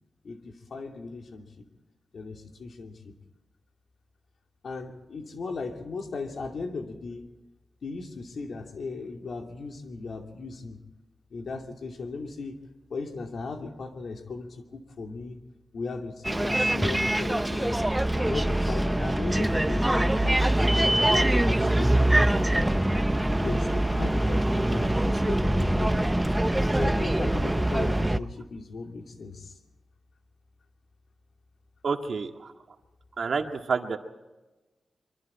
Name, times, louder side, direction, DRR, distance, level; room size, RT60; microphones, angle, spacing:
voice 1, 0.2-1.7 2.1-3.1 4.6-7.3 7.8-10.8 11.3-12.6 12.9-15.4 15.7-17.8 18.1-22.0 23.4-26.3 26.7-29.5, left 4 dB, 65° left, 3 dB, 2.7 m, -37 dB
Bus, 16.2-28.2, right 1 dB, 10° right, 0.6 m, -24 dB
voice 2, 31.8-32.5 33.2-34.0, right 5 dB, 65° right, 4 dB, 2.0 m, -29 dB
25.0 x 24.0 x 4.4 m, 1.1 s
wide cardioid pair, 115°, 0 cm